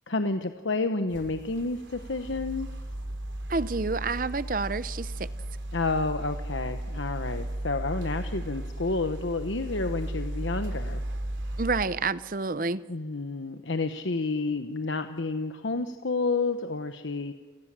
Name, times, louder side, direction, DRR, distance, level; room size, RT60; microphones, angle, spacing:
voice 1, 0.1-2.7 5.7-11.0 12.9-17.3, left 3 dB, 80° left, 1.1 m, -30 dB
sound 1, 1.1-11.8, right 1 dB, 80° right, 3.5 m, -35 dB
voice 2, 3.5-5.3 11.6-12.8, right 3 dB, 45° right, 0.7 m, -29 dB
29.0 x 18.5 x 7.6 m
head